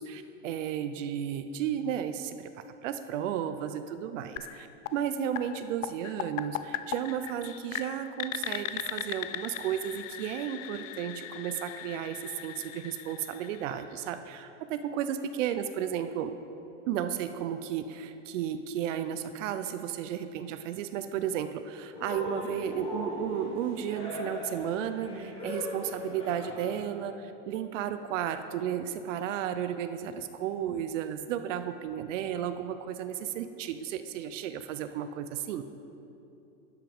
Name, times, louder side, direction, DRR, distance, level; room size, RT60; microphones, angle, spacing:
voice 1, 0.0-2.5 2.8-16.3 16.9-35.6, right 9 dB, 75° right, 10 dB, 0.5 m, -33 dB
sound 1, 4.4-14.2, left 12 dB, 90° left, 0.5 m, -39 dB
Cheering, 21.9-26.9, left 1 dB, 15° left, 1.3 m, -38 dB
12.0 x 5.8 x 3.5 m, 2.9 s
supercardioid pair, 165°, 38 cm